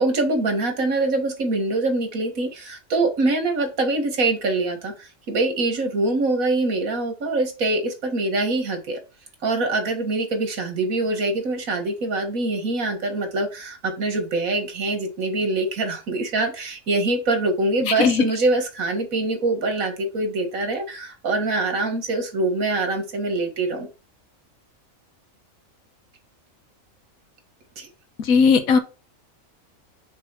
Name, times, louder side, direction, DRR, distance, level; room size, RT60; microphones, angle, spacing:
voice 1, 0.0-9.0 9.4-23.9 27.8-27.9, right 2 dB, 80° right, 5 dB, 2.1 m, -24 dB
voice 2, 17.9-18.3 28.2-28.8, left 5 dB, 90° left, 8 dB, 1.5 m, -17 dB
6.1 x 3.8 x 6.0 m, 0.31 s
omnidirectional pair, 1.4 m